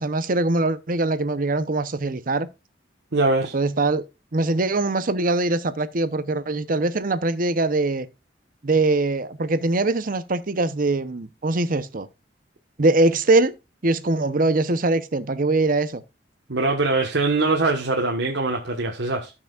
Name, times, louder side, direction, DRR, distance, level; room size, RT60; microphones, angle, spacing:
voice 1, 0.0-2.5 3.5-4.0 4.3-8.1 8.6-12.1 12.8-13.5 13.8-16.0, right 2 dB, 50° right, 0.8 m, -22 dB
voice 2, 3.1-3.5 16.5-19.3, right 3 dB, 80° right, 1.4 m, -22 dB
16.5 x 6.0 x 2.4 m
head